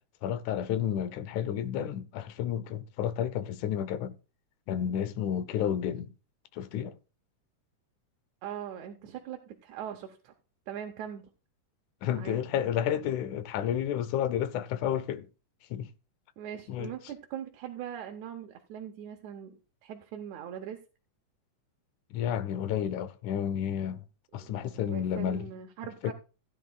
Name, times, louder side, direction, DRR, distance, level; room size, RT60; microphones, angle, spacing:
voice 1, 0.2-4.1 4.7-6.1 6.5-7.0 12.0-15.3 15.7-15.9 16.7-16.9 22.1-24.1 24.3-25.5 26.0-26.1, left 10 dB, 80° left, 2.1 m, -31 dB
voice 2, 8.4-10.3 10.7-11.2 12.1-12.4 16.4-20.8 24.3-26.1, right 9 dB, 75° right, 2.1 m, -41 dB
16.0 x 10.5 x 2.3 m
omnidirectional pair, 3.5 m